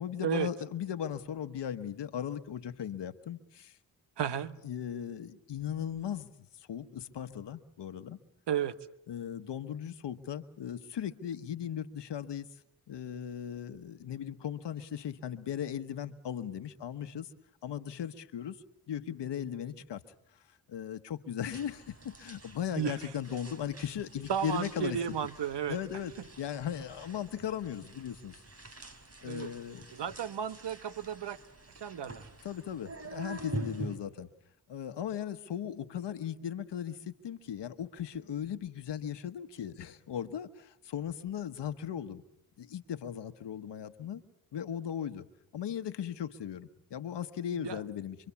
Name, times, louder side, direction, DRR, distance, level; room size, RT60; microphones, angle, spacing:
voice 1, 0.0-3.8 4.6-6.3 6.7-8.2 9.1-12.6 12.9-17.3 17.6-20.0 20.7-25.0 25.7-28.4 29.2-30.1 32.4-34.3 34.7-42.2 42.6-44.2 44.5-45.3 45.5-48.2, left 9 dB, 90° left, 1.2 m, -37 dB
voice 2, 4.2-4.6 8.5-8.8 22.8-23.1 24.3-25.8 29.2-29.5 29.9-31.4 31.8-32.3 47.6-47.8, right 9 dB, 80° right, 1.1 m, -33 dB
sound 1, 21.5-34.0, right 1 dB, 35° right, 3.3 m, -45 dB
26.5 x 23.5 x 7.1 m
cardioid pair, 45°, 41 cm